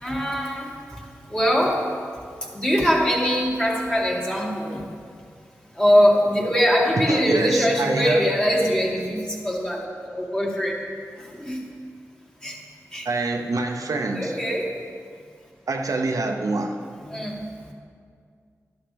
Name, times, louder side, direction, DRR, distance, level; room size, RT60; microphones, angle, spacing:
voice 1, 0.0-0.7 1.3-1.9 2.5-4.8 5.8-10.7 11.2-11.7 12.4-12.6 12.9-13.0 14.1-14.8 17.1-17.4, equal, 15° left, -3 dB, 2.4 m, -22 dB
voice 2, 7.1-8.2 13.0-14.4 15.7-16.8, right 3 dB, 70° right, 3 dB, 0.9 m, -26 dB
12.5 x 11.5 x 3.5 m, 2.2 s
cardioid pair, 55°, 6 cm